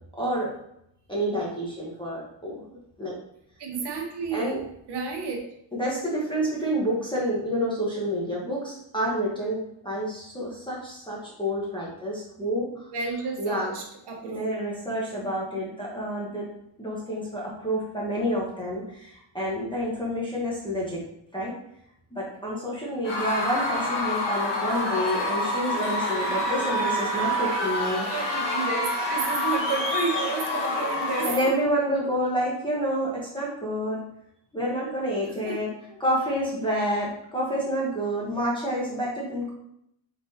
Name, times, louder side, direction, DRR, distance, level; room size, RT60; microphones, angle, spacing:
voice 1, 0.2-0.5 1.1-2.6 3.0-3.1 4.3-4.6 5.7-12.9 13.4-13.7 14.2-16.5 16.8-21.0 21.3-21.5 22.1-28.1 31.2-34.0 34.5-35.7 36.0-39.5, equal, 10° left, -6 dB, 1.0 m, -28 dB
voice 2, 3.6-4.6 4.9-5.4 12.9-14.6 28.1-31.5 35.4-35.6, right 4 dB, 60° right, 1 dB, 1.0 m, -31 dB
Screaming / Cheering / Crowd, 23.0-31.6, left 1 dB, 65° left, 1.3 m, -27 dB
3.9 x 3.7 x 2.7 m, 0.77 s
wide cardioid pair, 140°, 45 cm